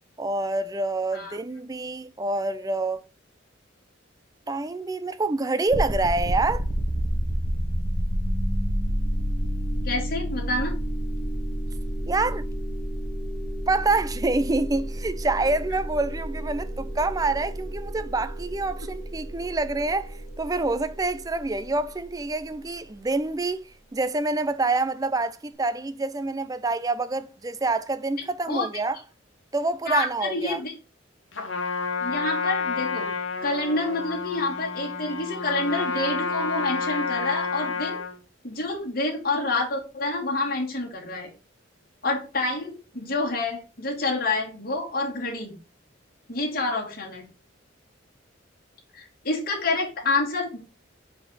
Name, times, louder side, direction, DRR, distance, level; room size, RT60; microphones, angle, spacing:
voice 1, 0.2-3.0 4.5-6.7 12.1-12.4 13.7-29.0 29.5-30.6, right 3 dB, 20° right, 0.4 m, -27 dB
sound 1, 5.7-22.6, equal, 25° left, 1.8 m, -30 dB
voice 2, 9.8-10.7 28.5-28.7 29.9-30.7 32.0-33.1 33.4-38.0 38.4-41.3 42.0-45.6 46.3-47.2 48.9-50.6, left 2 dB, 50° left, 2.5 m, -28 dB
Trumpet, 31.3-38.2, left 4 dB, 85° left, 1.5 m, -30 dB
5.3 x 5.0 x 4.0 m
head